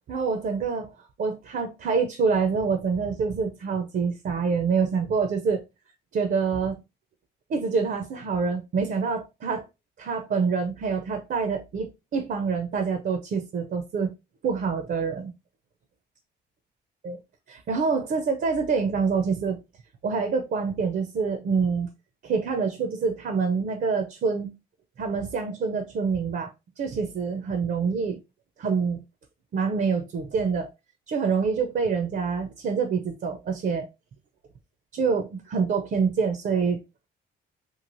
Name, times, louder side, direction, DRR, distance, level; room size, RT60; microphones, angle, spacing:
voice 1, 0.1-0.9 1.2-5.6 6.1-6.8 7.5-9.6 10.0-14.1 14.4-15.3 17.0-17.2 17.5-19.6 20.0-21.9 22.2-24.6 25.0-26.5 26.8-28.2 28.6-29.0 29.5-30.7 31.1-33.8 34.9-36.8, right 5 dB, 50° right, 0.5 m, -26 dB
3.0 x 2.4 x 2.5 m
cardioid pair, 90°, 20 cm